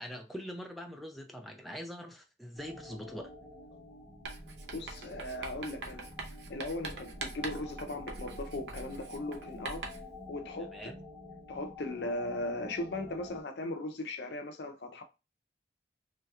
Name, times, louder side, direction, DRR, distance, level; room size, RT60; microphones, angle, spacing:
voice 1, 0.0-3.3 10.6-11.0, equal, ahead, 0.3 m, -43 dB
sound 1, 2.6-13.4, left 2 dB, 35° right, 1.1 m, -49 dB
Writing, 4.2-10.1, right 3 dB, 80° right, 0.6 m, -43 dB
voice 2, 4.7-6.1 6.5-9.9 10.3-10.7 11.5-15.0, left 2 dB, 75° left, 0.6 m, -38 dB
3.0 x 2.8 x 2.3 m
head